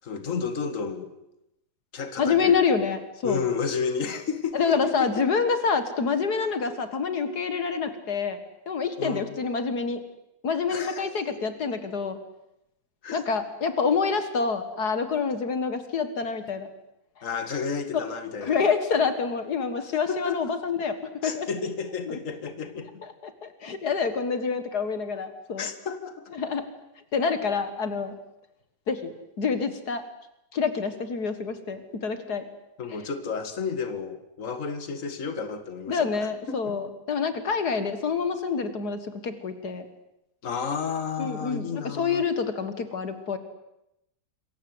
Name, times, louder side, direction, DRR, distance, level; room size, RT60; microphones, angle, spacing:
voice 1, 0.0-1.1 1.9-2.6 3.2-5.2 9.0-9.4 10.7-11.1 13.0-13.2 17.2-18.6 19.9-20.4 21.2-23.0 25.6-26.3 32.8-36.2 36.5-36.8 40.4-42.3, left 5 dB, 50° left, 9 dB, 2.3 m, -32 dB
voice 2, 2.2-3.4 4.5-8.4 8.7-10.0 10.4-12.2 13.1-16.7 17.9-18.1 18.4-21.0 21.2-21.5 22.1-22.2 23.0-25.7 26.3-26.6 27.1-28.1 28.9-29.1 29.4-30.0 30.5-32.5 35.9-39.9 41.2-43.4, left 5 dB, 75° left, 9 dB, 2.3 m, -27 dB
27.0 x 23.0 x 7.9 m, 0.86 s
omnidirectional pair, 1.7 m